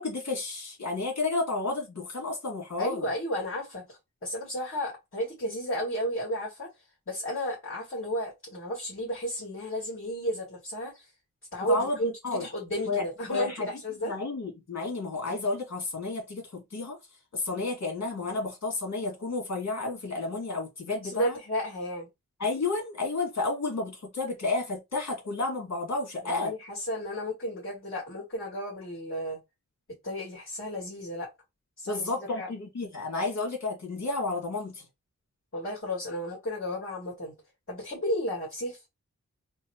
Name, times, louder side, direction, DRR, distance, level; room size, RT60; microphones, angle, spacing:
voice 1, 0.0-3.1 11.6-12.5 12.9-13.0 13.3-13.7 14.0-17.0 17.3-21.4 22.4-26.5 31.9-34.8, left 3 dB, 60° left, 2.3 m, -31 dB
voice 2, 2.8-6.7 7.1-11.1 11.5-14.1 21.0-22.1 26.2-29.4 30.0-31.3 31.8-32.5 35.5-37.3 37.7-38.8, equal, 40° left, 2.2 m, -33 dB
3.9 x 2.1 x 4.3 m
wide cardioid pair, 130°, 30 cm